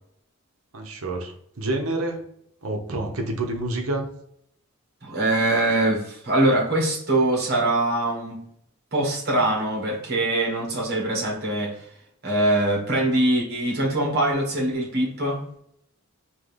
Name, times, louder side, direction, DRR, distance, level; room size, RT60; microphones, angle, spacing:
voice 1, 0.7-2.2 2.6-4.1, right 2 dB, 85° right, 0.9 m, -28 dB
voice 2, 5.0-8.4 8.9-11.8 12.2-15.4, right 1 dB, 50° right, 1.6 m, -23 dB
3.9 x 3.1 x 3.3 m
head